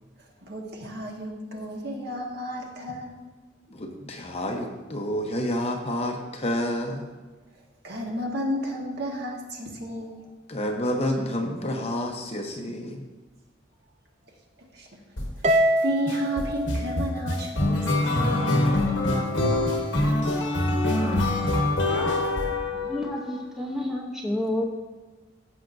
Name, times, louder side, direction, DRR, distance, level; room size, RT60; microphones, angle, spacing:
voice 1, 0.4-3.1 7.8-10.3 14.7-14.9 15.4-18.5, equal, 55° right, 0 dB, 1.4 m, -32 dB
voice 2, 3.7-7.1 10.5-13.1, left 1 dB, 30° left, 2 dB, 0.9 m, -29 dB
sound 1, 15.2-15.5 16.1-23.2, left 1 dB, 65° left, 1.4 m, -24 dB
Harp, 15.4-17.9, equal, 35° right, 0.4 m, -25 dB
voice 3, 22.7-24.6, left 1 dB, ahead, -1 dB, 0.8 m, -29 dB
15.0 x 5.8 x 2.6 m, 1.3 s
head